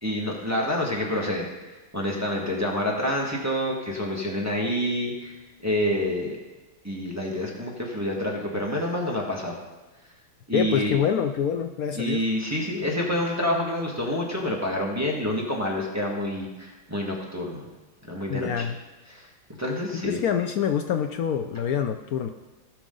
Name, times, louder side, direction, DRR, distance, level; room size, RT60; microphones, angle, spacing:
voice 1, 0.0-5.4 5.6-6.4 6.8-9.5 10.5-11.0 12.0-17.7 18.1-18.7 19.1-19.3 19.6-20.2, left 1 dB, 10° right, -2 dB, 1.5 m, -28 dB
voice 2, 10.5-12.2 18.3-18.8 19.9-22.3, left 8 dB, 90° left, 6 dB, 0.7 m, -26 dB
18.0 x 6.2 x 3.9 m, 1.2 s
omnidirectional pair, 2.2 m